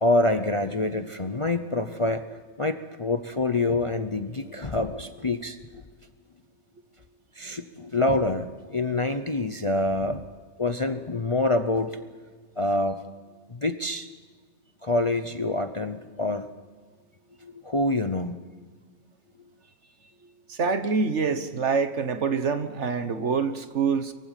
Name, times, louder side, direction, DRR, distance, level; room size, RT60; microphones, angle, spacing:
voice 1, 0.0-2.2 2.6-5.8 7.4-10.2 10.6-12.2 12.6-13.0 13.5-14.1 14.8-16.5 17.4-18.4, left 2 dB, 30° left, 9 dB, 0.7 m, -26 dB
voice 2, 20.5-24.1, right 5 dB, 60° right, 10 dB, 1.5 m, -26 dB
23.5 x 15.5 x 9.1 m, 1.4 s
omnidirectional pair, 1.4 m